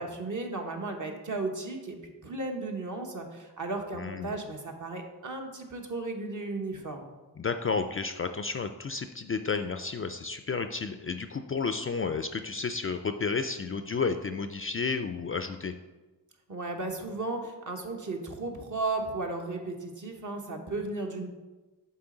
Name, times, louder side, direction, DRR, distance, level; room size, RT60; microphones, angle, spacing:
voice 1, 0.0-7.1 16.5-21.3, right 2 dB, 45° right, 2 dB, 1.2 m, -35 dB
voice 2, 3.9-4.3 7.4-15.7, left 5 dB, 35° left, 8 dB, 0.4 m, -32 dB
7.1 x 4.2 x 3.9 m, 1.2 s
cardioid pair, 45°, 42 cm